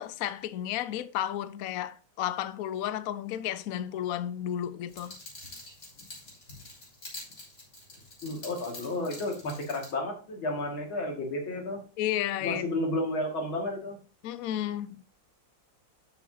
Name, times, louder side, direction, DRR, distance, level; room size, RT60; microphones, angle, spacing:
voice 1, 0.0-5.2 12.0-12.8 14.2-15.0, left 11 dB, 70° left, 0.8 m, -32 dB
sound 1, 4.9-9.9, left 2 dB, 45° left, 4.1 m, -46 dB
voice 2, 8.2-11.8 12.4-14.0, left 1 dB, 85° left, 2.9 m, -32 dB
12.5 x 7.0 x 2.8 m
omnidirectional pair, 2.1 m